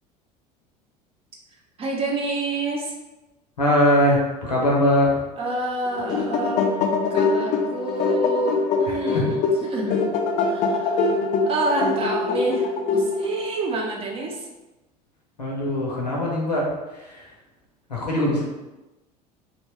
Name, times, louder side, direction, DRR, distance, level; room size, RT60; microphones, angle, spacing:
voice 1, 1.8-2.9 5.4-6.7 7.1-10.0 10.5-14.5, right 2 dB, 30° right, -1 dB, 0.6 m, -28 dB
voice 2, 3.6-5.2 9.1-9.4 15.4-17.3 17.9-18.4, left 1 dB, 80° left, -3 dB, 0.7 m, -21 dB
sound 1, 5.9-13.5, left 4 dB, 35° left, 0.4 m, -23 dB
2.8 x 2.2 x 2.9 m, 1.0 s
figure-of-eight pair, 70°, 20 cm